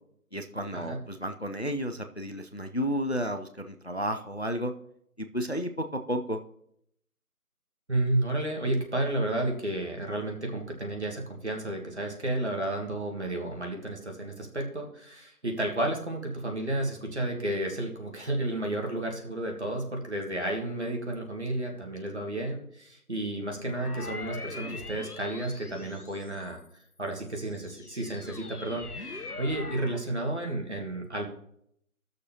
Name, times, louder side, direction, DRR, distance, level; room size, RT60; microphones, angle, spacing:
voice 1, 0.3-4.7 5.2-6.4, equal, 45° left, 7 dB, 0.5 m, -32 dB
voice 2, 7.9-26.6 27.0-31.3, right 1 dB, 50° right, 1 dB, 1.7 m, -32 dB
sound 1, 23.7-26.6 27.2-30.0, left 3 dB, 80° left, 1.1 m, -42 dB
16.0 x 6.7 x 2.8 m, 0.72 s
figure-of-eight pair, 175°, 45 cm